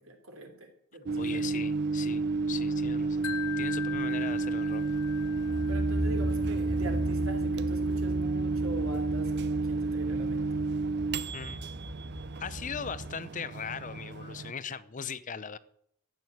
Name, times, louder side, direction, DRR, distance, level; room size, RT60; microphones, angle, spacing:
voice 1, 0.0-1.4 5.7-10.4, right 2 dB, 70° right, 5 dB, 3.2 m, -43 dB
Microwave oven, 1.1-14.5, right 3 dB, 50° right, 0.5 m, -31 dB
voice 2, 1.2-4.8 11.3-11.6 12.4-15.6, left 6 dB, 35° left, 16 dB, 0.6 m, -39 dB
Wind chime, 3.2-6.3, left 11 dB, 85° left, 0.9 m, -41 dB
sound 1, 4.8-13.1, equal, 10° right, 2.6 m, -36 dB
14.0 x 8.9 x 7.9 m, 0.70 s
head